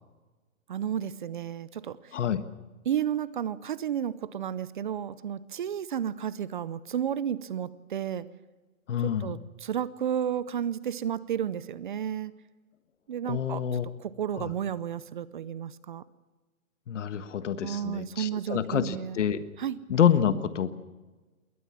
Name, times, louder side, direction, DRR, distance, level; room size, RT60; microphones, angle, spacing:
voice 1, 0.7-2.0 2.9-8.3 9.2-12.3 13.1-13.6 14.0-16.0 17.6-19.2 19.6-19.8, right 9 dB, 35° right, 18 dB, 0.6 m, -32 dB
voice 2, 2.1-2.4 8.9-9.3 13.3-13.8 14.4-14.5 16.9-19.4 19.9-20.7, left 9 dB, 60° left, 12 dB, 1.6 m, -27 dB
21.5 x 19.0 x 7.4 m, 1.3 s
hypercardioid pair, 160°, 41 cm